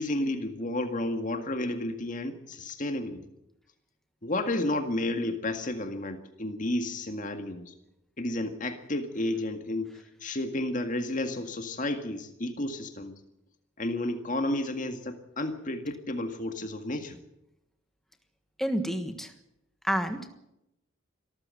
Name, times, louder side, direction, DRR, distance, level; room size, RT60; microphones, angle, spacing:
voice 1, 0.0-3.2 4.2-7.7 8.2-9.9 10.2-13.2 13.8-17.2, left 1 dB, 40° left, 7 dB, 2.0 m, -31 dB
voice 2, 18.6-19.3 19.8-20.4, equal, ahead, 7 dB, 1.4 m, -29 dB
25.0 x 14.0 x 7.8 m, 0.86 s
head